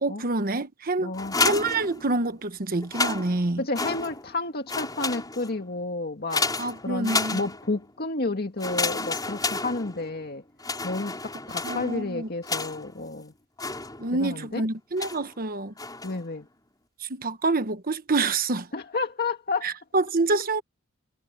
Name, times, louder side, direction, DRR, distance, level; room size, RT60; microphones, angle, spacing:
voice 1, 0.0-3.6 6.6-7.4 11.6-12.3 14.0-15.7 17.1-18.7 19.6-20.6, right 3 dB, 45° right, 1.2 m, -27 dB
voice 2, 1.0-1.4 3.6-6.4 6.8-10.4 10.8-13.3 14.1-14.6 16.0-16.5 18.7-19.7, left 3 dB, 45° left, 2.1 m, -31 dB
sound 1, 1.1-2.4 2.8-4.4 4.7-5.6 6.3-7.9 8.6-10.2 10.6-13.0 13.6-14.3 15.0-15.3 15.8-16.3, left 3 dB, 20° left, 5.8 m, -31 dB
head